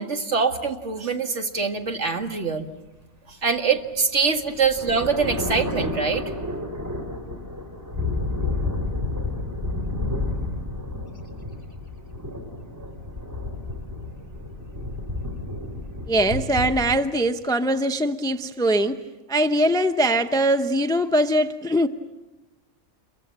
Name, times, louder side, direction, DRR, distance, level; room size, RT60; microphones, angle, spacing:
voice 1, 0.0-2.7 3.3-6.2, right 5 dB, 60° right, 5 dB, 2.2 m, -24 dB
sound 1, 3.9-17.0, left 2 dB, 15° right, 3.5 m, -30 dB
voice 2, 16.1-19.0 19.3-21.9, right 1 dB, 5° left, 9 dB, 0.7 m, -22 dB
28.0 x 23.5 x 7.4 m, 1.1 s
omnidirectional pair, 1.4 m